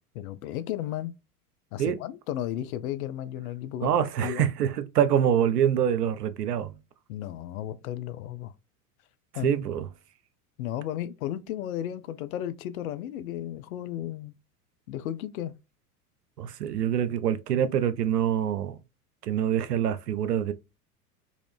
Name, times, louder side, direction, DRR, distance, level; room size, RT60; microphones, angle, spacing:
voice 1, 0.2-1.1 1.7-3.9 4.2-4.5 7.1-8.5 9.3-9.6 10.6-14.4 14.9-15.5, left 12 dB, 65° left, 0.5 m, -34 dB
voice 2, 3.8-6.8 9.4-9.9 16.4-18.8 19.2-20.5, right 9 dB, 85° right, 0.6 m, -25 dB
3.0 x 2.5 x 3.3 m
hypercardioid pair, 85°, 46 cm